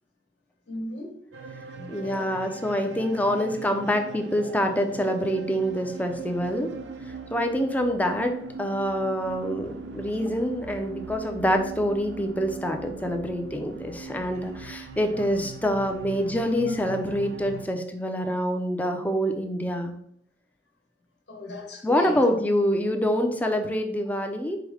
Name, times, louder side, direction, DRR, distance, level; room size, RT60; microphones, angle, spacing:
voice 1, 0.7-1.1 1.7-2.3 16.6-16.7 21.3-22.2, left 2 dB, 70° left, 1.2 m, -36 dB
sound 1, 1.3-17.6, right 5 dB, 80° right, 0.5 m, -40 dB
voice 2, 1.9-6.7 7.0-19.9 21.8-24.6, equal, 10° left, 0.5 m, -26 dB
4.8 x 2.1 x 4.8 m
head